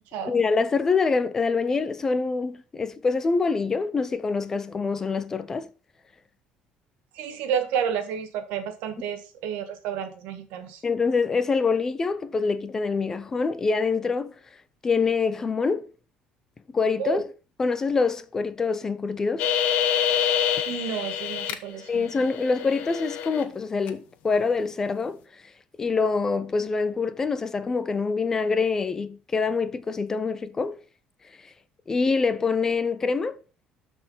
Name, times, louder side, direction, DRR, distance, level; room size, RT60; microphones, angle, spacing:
voice 1, 0.2-5.7 10.8-14.3 14.8-15.9 16.7-17.3 17.6-19.5 21.9-25.2 25.8-30.8 31.9-33.4, left 4 dB, 20° left, 0.6 m, -25 dB
voice 2, 7.1-10.8 17.0-17.2 20.7-22.1, right 8 dB, 85° right, 1.9 m, -30 dB
sound 1, 19.4-21.5 21.9-23.4 23.9-24.0, left 9 dB, 65° left, 1.3 m, -26 dB
12.5 x 4.4 x 5.7 m
cardioid pair, 165°, 3 cm